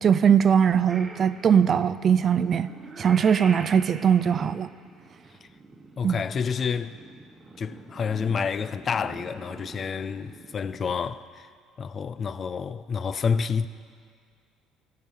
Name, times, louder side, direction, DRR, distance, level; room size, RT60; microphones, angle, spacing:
voice 1, 0.0-2.7 3.0-4.7 6.0-6.2, right 7 dB, 45° right, 0.4 m, -20 dB
Purr / Meow, 0.9-10.8, right 2 dB, 20° right, 1.2 m, -44 dB
voice 2, 6.0-7.0 7.6-11.5 11.8-13.7, left 6 dB, 40° left, 0.4 m, -29 dB
15.5 x 8.9 x 5.5 m
cardioid pair, 100°, 0 cm